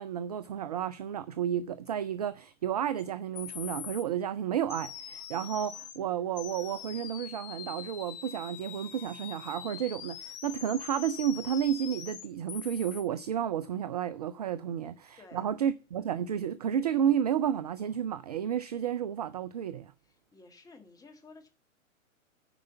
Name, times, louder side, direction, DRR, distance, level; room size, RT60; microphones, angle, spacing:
voice 1, 0.0-19.9, right 9 dB, 30° right, 0.4 m, -31 dB
sound 1, 3.0-3.1 3.3-4.0 4.7-6.0 6.4-13.0, left 10 dB, 40° left, 1.4 m, -43 dB
voice 2, 15.2-15.5 20.0-21.5, left 3 dB, 10° left, 1.6 m, -54 dB
9.7 x 4.9 x 7.8 m
figure-of-eight pair, 110°, 41 cm